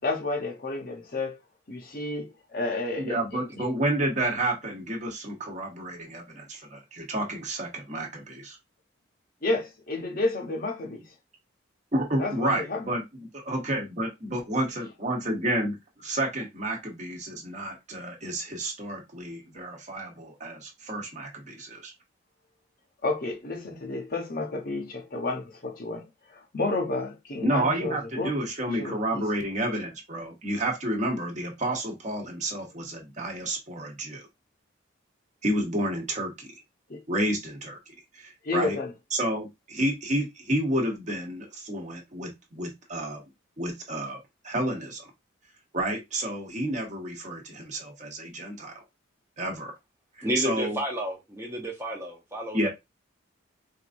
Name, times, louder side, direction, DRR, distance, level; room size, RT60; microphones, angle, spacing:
voice 1, 0.0-1.4 1.7-3.7 9.4-11.1 12.2-12.8 23.0-28.3 28.8-29.2 36.9-37.0 38.4-38.9, left 2 dB, 45° left, 0.8 m, -31 dB
voice 2, 3.0-8.6 11.9-21.9 27.4-34.2 35.4-36.5 37.1-37.8 38.1-38.8 39.1-43.2 43.6-44.2 44.4-45.0 45.7-48.7 49.4-49.7 50.2-50.8 52.5-52.7, right 1 dB, 35° right, 1.1 m, -30 dB
voice 3, 50.2-52.7, equal, 15° right, 0.7 m, -31 dB
4.6 x 2.5 x 2.5 m
head